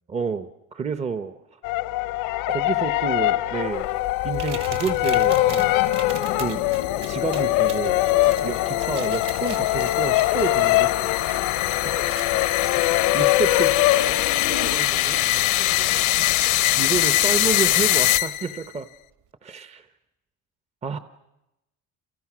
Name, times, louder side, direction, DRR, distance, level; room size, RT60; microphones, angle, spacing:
voice 1, 0.1-1.6 2.5-3.9 4.2-5.9 6.3-6.6 7.1-11.1 11.8-12.0 12.8-13.8 16.8-18.9 19.4-19.9 20.8-21.0, right 5 dB, 20° right, 11 dB, 0.9 m, -30 dB
sound 1, 1.6-14.8, left 16 dB, 85° left, 1.2 m, -23 dB
sound 2, 3.9-18.7, left 16 dB, 70° left, 0.9 m, -24 dB
sound 3, 4.3-16.7 18.0-18.1 18.6-18.8, right 9 dB, 80° right, 3.0 m, -43 dB
voice 2, 13.9-16.6 20.9-21.0, right 9 dB, 65° right, 8 dB, 3.3 m, -40 dB
29.0 x 29.0 x 6.2 m, 0.93 s
cardioid pair, 150°, 32 cm